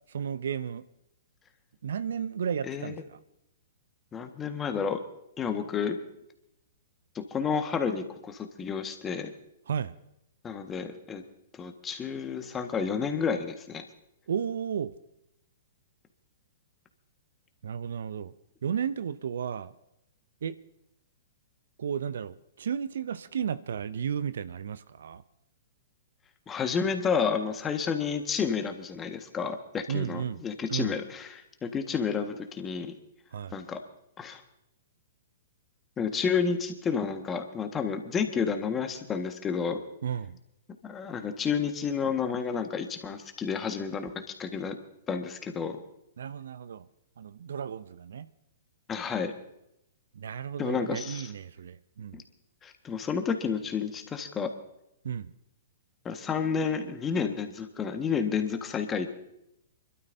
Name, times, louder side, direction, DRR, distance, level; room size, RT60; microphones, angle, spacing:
voice 1, 0.1-0.8 1.8-3.2 9.7-10.0 14.3-14.9 17.6-18.3 18.6-19.7 20.4-20.6 21.8-25.2 29.9-30.4 30.7-30.9 33.3-33.6 40.0-40.4 46.2-46.9 47.2-48.3 50.1-52.2 55.0-55.3, right 8 dB, 65° right, 16 dB, 0.5 m, -33 dB
voice 2, 2.6-2.9 4.1-5.0 5.4-6.0 7.1-9.3 10.4-11.2 11.6-13.8 26.5-32.9 33.5-33.8 34.2-34.4 36.0-39.8 40.8-44.1 44.4-44.7 45.1-45.8 48.9-49.3 50.6-51.3 52.1-52.2 52.6-54.5 56.0-59.1, left 6 dB, 20° left, 6 dB, 1.5 m, -30 dB
28.5 x 12.5 x 2.7 m, 0.83 s
figure-of-eight pair, 115°, 0 cm